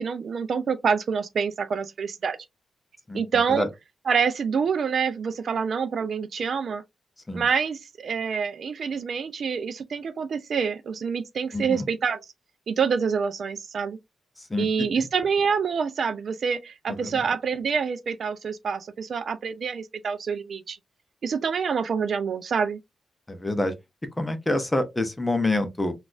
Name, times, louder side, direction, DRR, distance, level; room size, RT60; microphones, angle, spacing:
voice 1, 0.0-2.4 3.1-3.7 4.1-6.8 7.3-12.2 12.7-14.0 14.6-20.8 21.2-22.8, right 6 dB, 55° right, 0.3 m, -26 dB
voice 2, 11.5-11.9 14.4-14.7 15.0-15.1 16.9-17.2 23.3-23.7 24.2-25.9, left 2 dB, 15° left, 0.6 m, -27 dB
4.0 x 2.3 x 2.4 m
wide cardioid pair, 145°, 0 cm